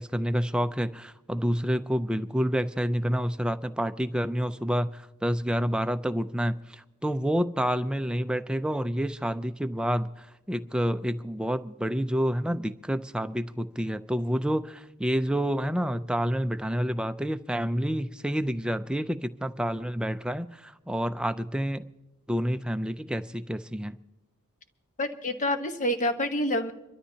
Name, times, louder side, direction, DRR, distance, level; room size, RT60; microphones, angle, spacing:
voice 1, 0.0-21.8 22.3-24.0, equal, 5° right, 0.4 m, -28 dB
voice 2, 25.0-26.7, left 1 dB, 35° left, 1.1 m, -27 dB
26.5 x 13.0 x 2.8 m
head